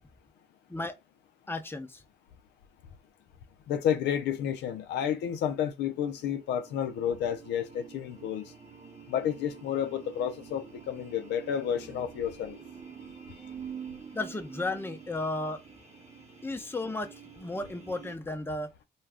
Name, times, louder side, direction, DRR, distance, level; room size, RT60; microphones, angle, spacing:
voice 1, 1.5-2.0 14.1-15.6 16.4-18.7, left 2 dB, 15° left, 0.6 m, -34 dB
voice 2, 3.7-8.5 9.1-12.6, left 9 dB, 85° left, 0.4 m, -31 dB
sound 1, 6.0-18.2, right 7 dB, 40° right, 0.9 m, -47 dB
2.3 x 2.3 x 3.4 m
supercardioid pair, 60°, 17 cm